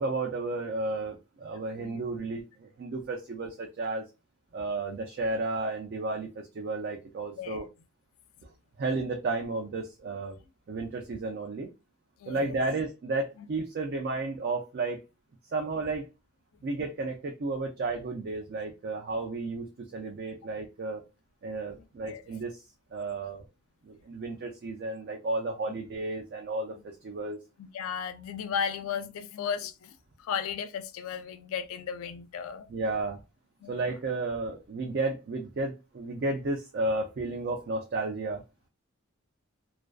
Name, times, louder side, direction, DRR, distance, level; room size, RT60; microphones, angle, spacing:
voice 1, 0.0-4.0 4.5-7.7 8.8-10.4 10.7-11.7 12.3-15.0 15.5-16.0 16.6-21.0 21.4-22.6 22.9-23.4 23.8-27.4 32.7-33.2 33.7-38.4, right 2 dB, 45° right, 0.3 m, -32 dB
voice 2, 12.2-12.6 22.1-22.2 27.6-29.9 30.2-32.7 33.6-33.8, left 7 dB, 70° left, 0.3 m, -35 dB
2.4 x 2.2 x 2.3 m
head